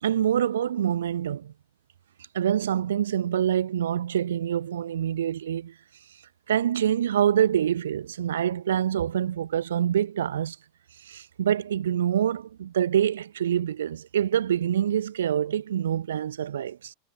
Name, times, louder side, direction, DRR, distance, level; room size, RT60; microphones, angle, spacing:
voice 1, 0.0-1.5 2.3-5.7 6.5-10.6 11.0-16.9, right 10 dB, 75° right, 1.2 m, -26 dB
figure-of-eight pair, 90°, 0 cm